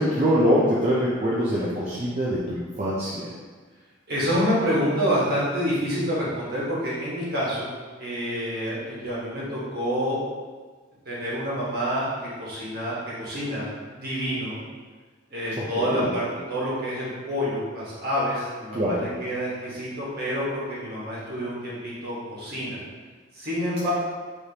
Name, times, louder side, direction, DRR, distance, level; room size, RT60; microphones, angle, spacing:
voice 1, 0.0-3.3 15.6-16.1 18.7-19.0, equal, 35° right, -7 dB, 0.5 m, -24 dB
voice 2, 4.1-7.7 8.0-10.2 11.0-12.1 12.4-14.6 15.3-22.8 23.3-23.9, equal, 50° right, -7 dB, 1.4 m, -27 dB
4.9 x 3.1 x 2.8 m, 1.4 s
head